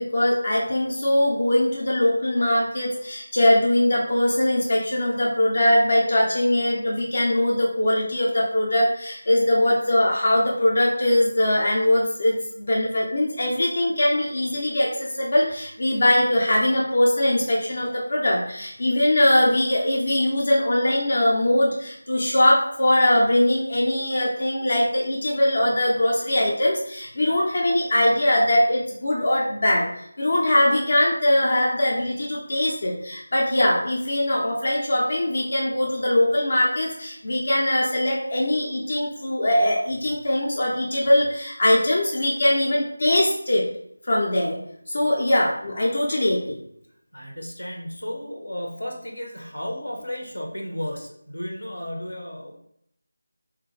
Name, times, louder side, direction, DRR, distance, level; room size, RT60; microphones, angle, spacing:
voice 1, 0.0-43.6 44.1-44.6 44.9-46.6, left 1 dB, 50° left, -3 dB, 0.6 m, -21 dB
voice 2, 47.1-52.5, equal, 90° left, 1 dB, 1.0 m, -34 dB
3.5 x 2.4 x 3.2 m, 0.72 s
figure-of-eight pair, 165°, 0 cm